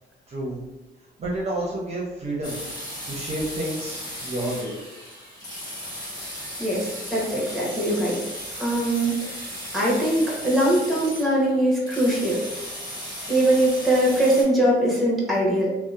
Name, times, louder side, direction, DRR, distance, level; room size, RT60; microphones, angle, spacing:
voice 1, 0.3-0.6 1.2-2.5 3.1-4.7, right 1 dB, 35° right, -4 dB, 0.6 m, -29 dB
sound 1, 2.4-14.4, equal, 20° left, 1.2 m, -36 dB
voice 2, 6.6-8.2 8.6-9.4 9.7-12.4 13.3-15.7, right 1 dB, ahead, -4 dB, 0.9 m, -22 dB
2.7 x 2.0 x 2.4 m, 1.1 s
cardioid pair, 90°, 20 cm